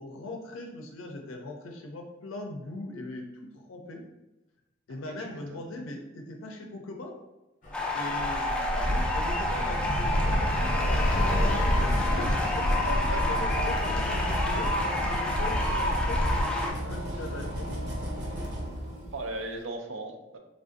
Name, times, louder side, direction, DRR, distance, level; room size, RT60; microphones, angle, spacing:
voice 1, 0.0-3.2 3.5-4.0 4.9-7.1 7.9-17.7, left 2 dB, 90° left, 2 dB, 0.4 m, -40 dB
Bus / Traffic noise roadway noise, 7.6-16.4, equal, 40° left, 0.6 m, -29 dB
sound 1, 7.7-16.7, left 2 dB, 5° left, 0.3 m, -30 dB
sound 2, 11.5-19.4, equal, 60° right, 0.8 m, -35 dB
voice 2, 12.7-13.2 19.1-20.4, right 2 dB, 85° right, 4 dB, 0.4 m, -37 dB
3.3 x 2.4 x 2.5 m, 1.0 s
head